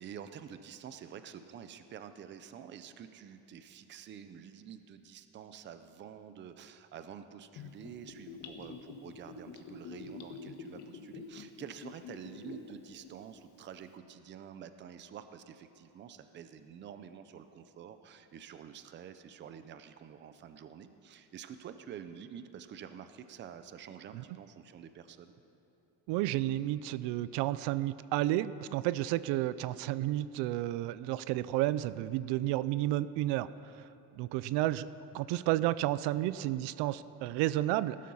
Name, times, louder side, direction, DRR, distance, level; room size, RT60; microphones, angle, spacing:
voice 1, 0.0-25.3, right 8 dB, 30° right, 10 dB, 0.5 m, -48 dB
Gurgling / Bathtub (filling or washing), 7.6-12.7 13.0-13.1, left 5 dB, 55° left, 1.5 m, -46 dB
voice 2, 26.1-33.5 34.2-34.9 35.1-38.0, right 15 dB, 80° right, 16 dB, 0.6 m, -31 dB
18.5 x 12.5 x 5.5 m, 2.9 s
cardioid pair, 175°, 40 cm